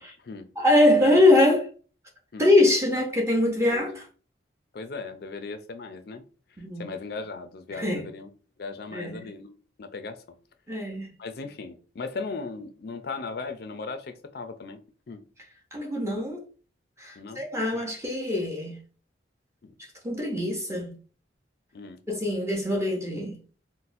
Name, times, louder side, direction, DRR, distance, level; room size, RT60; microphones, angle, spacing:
voice 1, 0.0-0.5 1.0-1.2 2.3-2.5 3.7-3.9 4.7-6.2 6.8-8.3 8.6-9.5 9.8-10.2 11.2-14.8 15.1-15.3 17.2-17.5 17.7-17.8 19.6-19.7 21.7-22.0, left 4 dB, 55° left, 0.4 m, -37 dB
voice 2, 0.6-1.7 2.4-4.1 6.6-6.9 7.7-8.1 8.9-9.3 10.7-11.2 15.7-16.4 17.0-18.8 20.0-20.9 22.1-23.4, left 1 dB, 15° right, 0.6 m, -23 dB
4.0 x 2.1 x 2.5 m
head